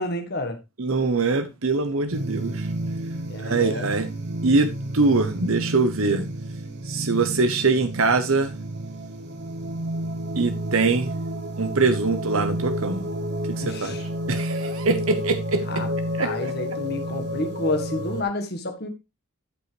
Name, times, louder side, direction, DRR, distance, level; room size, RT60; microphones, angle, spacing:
voice 1, 0.0-0.6 3.3-3.9 13.6-14.1 15.7-15.9 16.2-18.9, left 2 dB, 45° left, 1.5 m, -29 dB
voice 2, 0.8-2.7 3.4-4.1 4.4-4.7 4.9-6.2 6.8-8.6 10.4-11.1 11.6-13.0 13.6-14.0 14.3-15.6 16.2-16.3, right 3 dB, 70° right, 1.0 m, -23 dB
sound 1, 2.1-18.2, equal, 50° right, 1.1 m, -30 dB
12.5 x 5.4 x 3.3 m
head